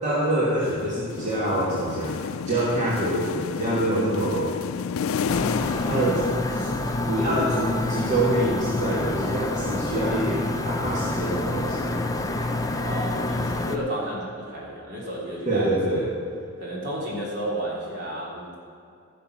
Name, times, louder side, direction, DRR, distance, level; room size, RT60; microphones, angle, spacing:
voice 1, 0.0-2.2 2.5-4.5 5.8-6.7 7.1-12.1 15.4-16.1, right 1 dB, 35° right, -8 dB, 2.4 m, -25 dB
sound 1, 0.6-7.1, left 6 dB, 85° left, 0.4 m, -31 dB
sound 2, 5.3-13.8, left 2 dB, 15° left, 0.6 m, -28 dB
voice 2, 12.8-16.1 16.6-18.6, right 1 dB, 55° right, -4 dB, 3.2 m, -32 dB
14.5 x 6.8 x 6.3 m, 2.4 s
head